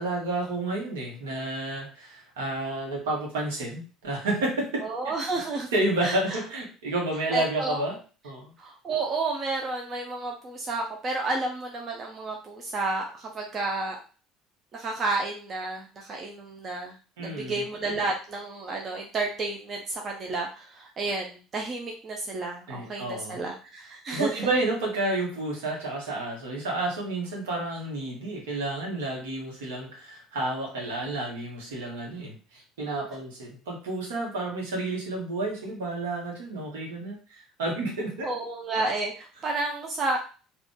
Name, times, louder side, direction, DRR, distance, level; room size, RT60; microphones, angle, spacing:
voice 1, 0.0-4.8 5.7-8.0 8.2-8.5 17.2-17.6 22.7-23.4 24.1-38.3, right 2 dB, 70° right, -1 dB, 1.3 m, -30 dB
voice 2, 4.8-5.7 6.0-6.4 7.3-7.8 8.6-14.0 14.7-16.9 17.2-24.3 38.2-40.2, right 3 dB, 35° right, 1 dB, 0.7 m, -31 dB
3.7 x 2.5 x 3.5 m, 0.36 s
figure-of-eight pair, 60°, 0 cm